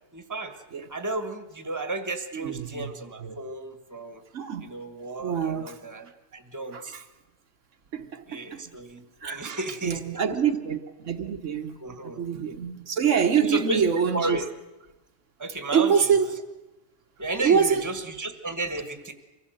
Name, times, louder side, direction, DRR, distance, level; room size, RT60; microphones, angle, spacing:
voice 1, 0.1-0.6 0.9-4.2 4.6-7.0 8.3-10.4 11.8-12.3 13.4-13.8 14.1-14.5 15.4-16.1 17.2-19.1, right 2 dB, 15° right, 1.3 m, -33 dB
voice 2, 2.3-2.9 3.2-3.4 4.3-4.7 5.2-5.8 6.7-7.0 7.9-8.6 9.2-11.8 12.0-14.4 15.7-16.3 17.4-17.8, right 7 dB, 80° right, 1.5 m, -25 dB
24.5 x 15.5 x 7.8 m
omnidirectional pair, 1.3 m